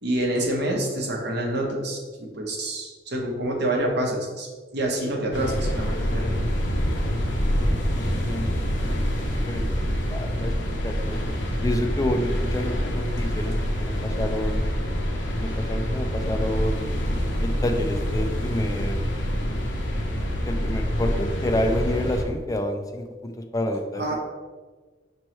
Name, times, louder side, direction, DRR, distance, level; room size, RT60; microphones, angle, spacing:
voice 1, 0.0-4.5 4.7-6.3 23.9-24.1, right 1 dB, 65° right, 0 dB, 1.0 m, -27 dB
sound 1, 5.3-22.2, equal, 80° left, 0.7 m, -26 dB
voice 2, 7.6-8.5 9.5-10.5 10.8-11.2 11.6-14.6 15.4-16.9 17.4-19.0 20.4-24.1, left 1 dB, 20° left, 5 dB, 0.4 m, -29 dB
5.4 x 3.0 x 3.1 m, 1.4 s
head